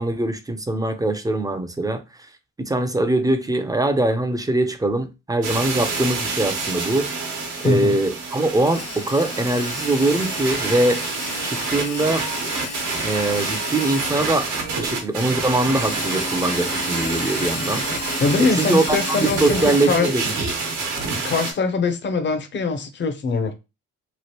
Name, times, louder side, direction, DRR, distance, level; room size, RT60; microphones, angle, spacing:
voice 1, 0.0-2.0 2.6-7.2 7.6-11.0 11.4-12.3 13.0-17.8 18.4-20.2, right 2 dB, 10° right, 0.5 m, -22 dB
sound 1, 5.4-21.5, right 4 dB, 80° right, 1.0 m, -27 dB
voice 2, 7.6-8.0 18.2-20.1 21.1-23.5, left 4 dB, 40° left, 0.6 m, -22 dB
Drill, 8.7-14.7 15.7-20.4, left 4 dB, 90° left, 1.2 m, -33 dB
3.1 x 2.5 x 2.8 m
cardioid pair, 90°, 30 cm